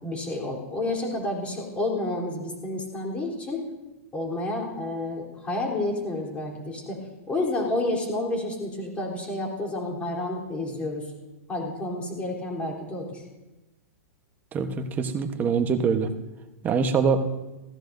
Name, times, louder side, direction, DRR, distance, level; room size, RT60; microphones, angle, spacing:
voice 1, 0.0-3.6 4.1-7.0 7.3-11.1 11.5-13.3, left 2 dB, 15° left, -1 dB, 3.6 m, -30 dB
voice 2, 14.5-16.1 16.6-17.2, right 5 dB, 20° right, 7 dB, 1.1 m, -24 dB
19.0 x 15.5 x 2.7 m, 1.1 s
hypercardioid pair, 135°, 8 cm